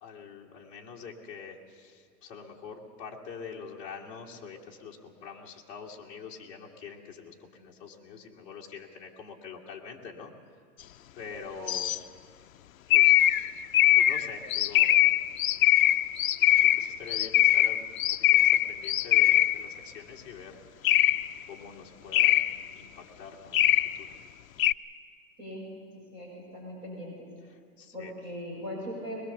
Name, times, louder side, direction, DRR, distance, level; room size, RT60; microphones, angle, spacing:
voice 1, 0.0-10.3 11.1-12.0 12.9-13.6 13.9-15.0 16.6-20.8 21.5-22.4 22.7-24.1 27.8-28.1, left 5 dB, 15° left, -3 dB, 1.6 m, -45 dB
sound 1, 11.7-12.0 12.9-19.7 20.8-21.4 22.1-22.7 23.5-24.1 24.6-24.7, left 14 dB, 55° left, 0.5 m, -22 dB
voice 2, 25.9-27.3 27.9-29.2, equal, 25° right, -4 dB, 5.6 m, -39 dB
22.0 x 20.0 x 6.9 m, 2.2 s
hypercardioid pair, 175°, 49 cm